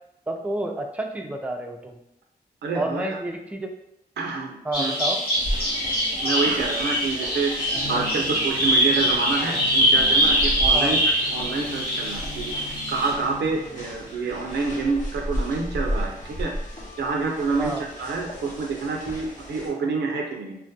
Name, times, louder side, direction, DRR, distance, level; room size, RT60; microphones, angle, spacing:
voice 1, 0.3-2.0 2.7-3.7 4.6-5.2 10.7-11.0 17.6-17.9, right 1 dB, 10° right, 3 dB, 0.3 m, -29 dB
voice 2, 2.6-3.2 4.2-4.9 6.2-7.6 7.9-12.5 12.9-16.5 17.0-20.6, right 4 dB, 90° right, 1 dB, 0.4 m, -27 dB
Bird vocalization bird call bird song, 4.7-13.1, equal, 65° left, 1.2 m, -23 dB
sound 1, 5.3-19.7, equal, 50° left, 0.7 m, -34 dB
2.2 x 2.1 x 2.6 m, 0.80 s
cardioid pair, 45°, 17 cm